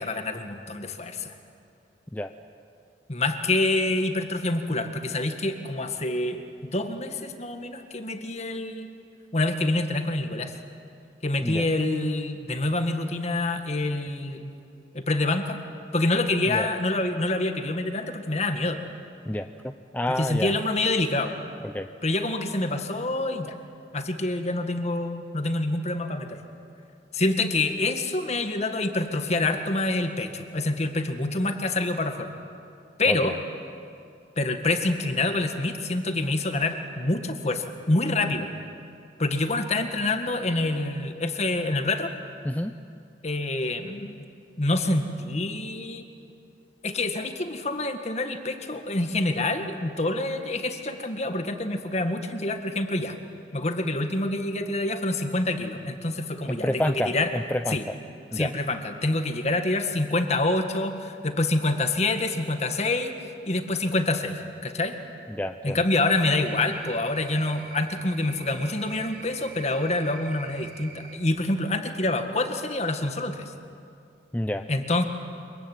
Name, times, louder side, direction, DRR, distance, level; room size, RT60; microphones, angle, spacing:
voice 1, 0.0-1.4 3.1-8.9 9.3-10.5 11.2-14.5 14.9-15.6 15.9-18.8 20.2-21.3 22.0-23.6 23.9-26.4 27.1-32.3 33.0-33.3 34.4-38.5 39.2-42.1 43.2-44.3 44.6-46.0 46.8-53.2 53.5-57.3 57.7-57.8 58.3-63.1 63.5-65.0 65.6-73.5 74.7-75.0, left 2 dB, 40° left, 6 dB, 1.9 m, -26 dB
voice 2, 19.3-20.5 21.6-21.9 33.1-33.4 42.4-42.8 56.5-57.9 58.3-58.5 65.3-65.8 74.3-74.7, left 1 dB, 10° left, 7 dB, 0.6 m, -29 dB
sound 1, 66.0-71.2, right 4 dB, 70° right, 4.0 m, -46 dB
25.0 x 23.0 x 9.5 m, 2.5 s
head